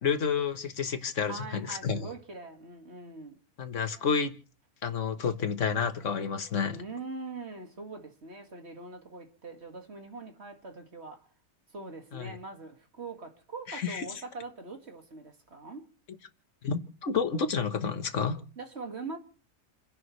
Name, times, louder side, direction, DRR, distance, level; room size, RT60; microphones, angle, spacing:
voice 1, 0.0-2.1 3.6-4.3 4.8-6.8 12.1-12.3 13.7-14.0 16.6-18.4, left 6 dB, 55° left, 1.6 m, -30 dB
voice 2, 1.3-3.4 6.7-11.3 11.7-15.9 18.6-19.2, right 3 dB, 45° right, 2.3 m, -42 dB
29.5 x 11.0 x 3.2 m
omnidirectional pair, 1.6 m